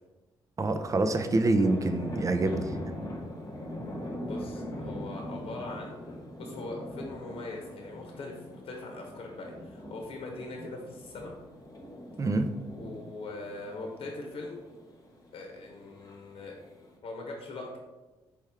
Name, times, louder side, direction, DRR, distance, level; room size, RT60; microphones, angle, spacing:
sound 1, 0.6-17.0, left 1 dB, 30° left, 1.1 m, -42 dB
voice 1, 0.6-2.8 12.2-12.5, right 2 dB, 30° right, 7 dB, 0.5 m, -26 dB
voice 2, 4.1-5.9 6.4-11.3 12.7-14.6 15.3-16.6 17.0-17.8, left 2 dB, 60° left, 1 dB, 0.9 m, -41 dB
4.4 x 3.3 x 3.4 m, 1.1 s
supercardioid pair, 55°, 11 cm